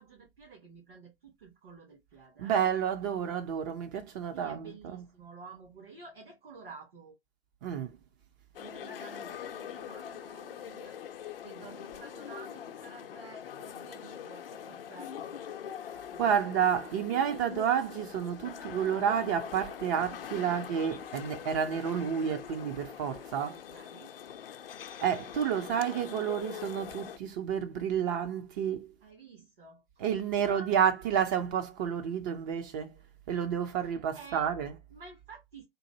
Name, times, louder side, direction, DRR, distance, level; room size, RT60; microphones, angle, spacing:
voice 1, 0.0-2.5 4.3-7.2 8.6-15.4 16.1-17.0 17.4-17.6 20.5-20.7 23.5-24.1 29.0-30.1 30.3-30.9 34.1-34.5 34.9-35.7, right 4 dB, 70° right, 2.1 m, -51 dB
voice 2, 2.4-5.1 7.6-8.0 16.2-23.6 25.0-28.9 30.0-33.0 33.3-34.8, right 8 dB, 20° right, 0.4 m, -30 dB
sound 1, 8.5-27.2, left 9 dB, 65° left, 0.6 m, -43 dB
3.9 x 2.5 x 2.6 m
figure-of-eight pair, 115°, 30 cm